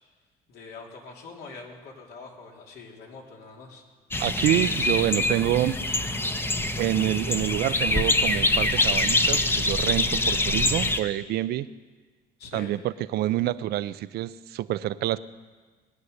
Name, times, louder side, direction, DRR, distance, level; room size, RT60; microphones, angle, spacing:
voice 1, 0.5-3.8 12.4-12.7, left 4 dB, 75° left, 0 dB, 3.0 m, -44 dB
sound 1, 4.1-11.0, left 2 dB, 15° left, 0.8 m, -25 dB
voice 2, 4.2-5.8 6.8-11.7 12.5-15.2, right 14 dB, 70° right, 16 dB, 0.6 m, -27 dB
19.0 x 9.5 x 6.6 m, 1.4 s
cardioid pair, 110°, 17 cm